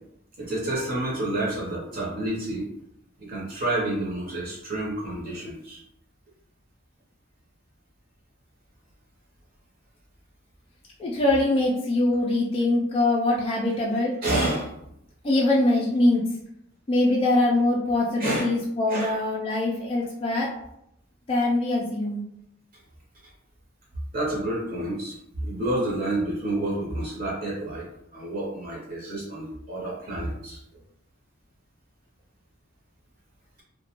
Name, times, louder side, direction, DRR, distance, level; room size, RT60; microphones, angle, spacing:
voice 1, 0.4-2.6 3.2-5.8 13.9-14.7 18.2-18.5 18.9-19.1 24.1-27.9 28.1-30.6, right 1 dB, 45° right, -4 dB, 0.7 m, -29 dB
voice 2, 11.0-14.1 15.2-16.2 16.9-20.5 21.3-22.2, left 2 dB, 30° left, -3 dB, 0.3 m, -23 dB
2.3 x 2.1 x 2.9 m, 0.77 s
head